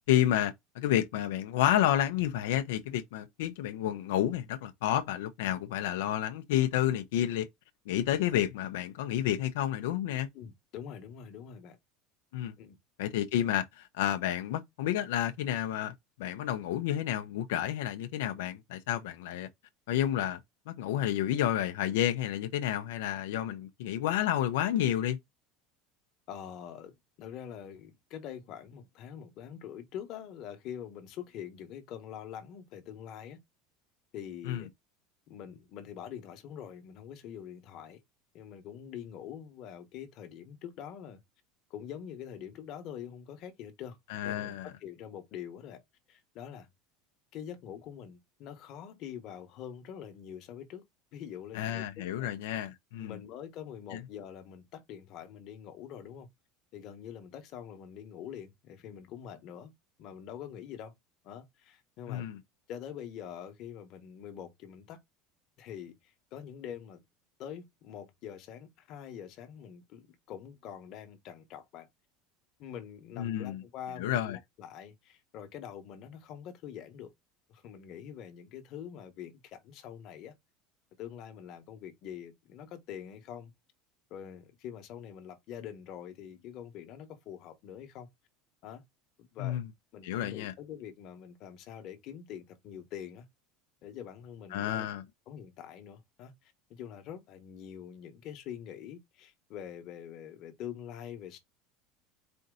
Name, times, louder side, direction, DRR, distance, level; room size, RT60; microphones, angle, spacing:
voice 1, 0.1-7.5 7.9-10.3 12.3-12.5 13.0-19.5 19.9-20.4 20.7-25.2 34.4-34.6 44.1-44.7 51.5-53.2 53.9-54.0 62.1-62.4 73.2-73.6 74.0-74.4 89.4-89.6 90.0-90.5 94.5-95.0, left 12 dB, 90° left, 0.6 m, -30 dB
voice 2, 10.3-11.8 12.6-12.8 26.3-33.4 34.1-34.7 35.3-38.0 38.3-41.2 41.7-44.0 44.2-44.5 44.8-45.8 46.1-46.7 47.3-50.9 51.1-52.3 53.0-56.3 56.7-59.7 60.0-60.9 61.2-62.3 62.7-65.0 65.6-67.0 67.4-71.9 72.6-77.1 77.5-80.3 81.0-83.5 84.1-88.1 88.6-88.8 89.2-89.6 89.9-93.3 93.8-94.9 95.3-101.4, left 9 dB, 45° left, 1.1 m, -45 dB
4.3 x 2.7 x 3.7 m
cardioid pair, 160°, 0 cm